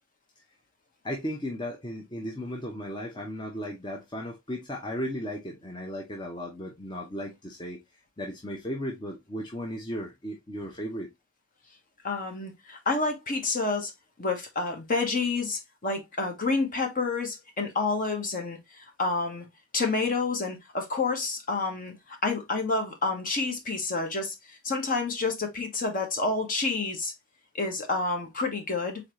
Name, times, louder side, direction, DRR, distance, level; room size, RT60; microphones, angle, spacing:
voice 1, 1.0-7.8 8.2-11.1, equal, 20° left, 0.9 m, -35 dB
voice 2, 12.0-13.9 14.2-19.5 19.7-24.3 24.6-27.1 27.5-29.0, left 3 dB, 40° left, 1.3 m, -29 dB
4.1 x 4.0 x 3.1 m
head